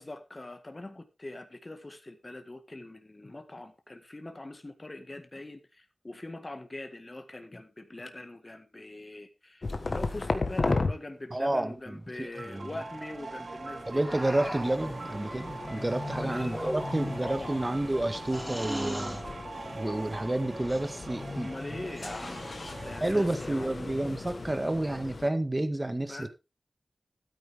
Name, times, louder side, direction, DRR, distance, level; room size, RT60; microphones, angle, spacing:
voice 1, 0.0-14.1 16.1-17.6 21.1-23.7 26.1-26.3, left 2 dB, 30° left, 7 dB, 1.9 m, -43 dB
sound 1, 9.6-10.9 12.6-25.3, left 3 dB, 60° left, 1.5 m, -36 dB
voice 2, 11.3-12.7 13.9-19.2 19.7-21.5 21.8-22.1 23.0-26.3, right 1 dB, 25° right, 9 dB, 1.7 m, -30 dB
sound 2, 12.3-23.0, right 3 dB, 65° right, 1.0 m, -43 dB
sound 3, 14.0-14.9 16.4-17.1 18.3-19.3 20.5-20.9 21.8-22.6, equal, 10° right, 5.2 m, -38 dB
13.0 x 9.3 x 3.6 m, 0.26 s
wide cardioid pair, 75°, 0 cm